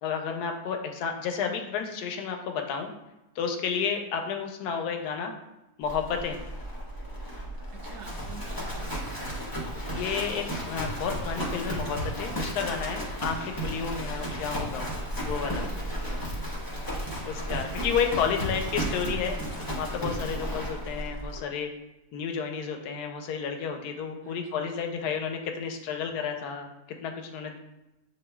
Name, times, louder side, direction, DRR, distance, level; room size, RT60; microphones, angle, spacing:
voice 1, 0.0-2.9 3.4-5.3 5.8-6.4 9.9-14.9 15.2-15.7 17.2-19.4 19.7-21.7 22.1-26.7 27.0-27.6, left 6 dB, 80° left, 4 dB, 1.1 m, -31 dB
Livestock farm animals working animals, 5.8-21.4, equal, 25° left, 0.5 m, -34 dB
voice 2, 7.7-9.2 14.0-14.4 16.0-16.5 18.1-18.5 24.2-24.7, right 2 dB, 80° right, 1 dB, 1.1 m, -47 dB
7.6 x 2.6 x 2.2 m, 0.98 s
omnidirectional pair, 1.7 m